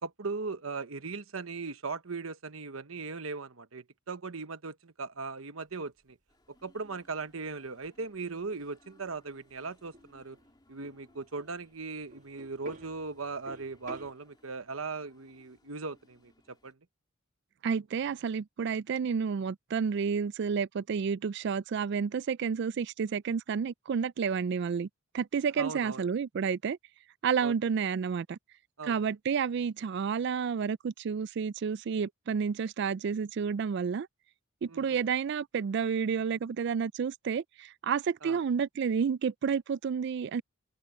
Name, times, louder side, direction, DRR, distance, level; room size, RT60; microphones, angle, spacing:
voice 1, 0.0-6.2 6.6-10.4 10.7-16.8 25.6-26.0 27.4-27.5 28.8-29.0 34.7-35.0 38.2-38.4, right 4 dB, 80° right, 1.1 m, -38 dB
sound 1, 5.7-14.1, right 2 dB, 35° right, 1.6 m, -53 dB
sound 2, 6.3-16.7, left 1 dB, 20° left, 3.2 m, -66 dB
voice 2, 17.6-24.9 25.1-26.8 27.2-28.4 28.9-34.1 34.6-40.4, right 6 dB, 55° right, 0.3 m, -30 dB
head